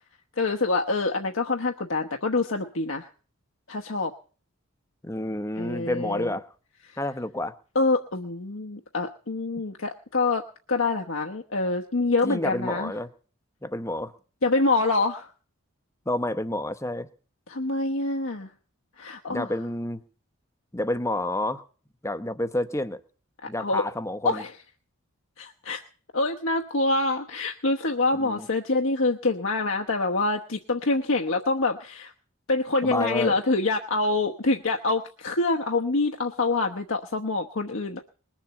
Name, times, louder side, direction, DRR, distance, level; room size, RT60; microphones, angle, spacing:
voice 1, 0.4-3.1 3.7-4.1 5.6-6.3 6.9-7.0 7.7-10.4 10.7-12.9 14.4-15.3 17.5-18.5 19.0-19.5 23.6-23.8 24.2-24.5 25.4-25.8 26.1-32.1 32.5-38.1, left 3 dB, 65° left, 2 dB, 1.1 m, -26 dB
voice 2, 5.0-6.5 7.0-7.5 12.2-13.1 13.6-14.1 16.1-17.1 19.3-20.0 20.7-21.6 22.0-23.0 23.5-24.4 28.2-28.5 32.8-33.4, left 1 dB, 15° left, 12 dB, 0.8 m, -29 dB
20.5 x 7.4 x 8.2 m, 0.40 s
head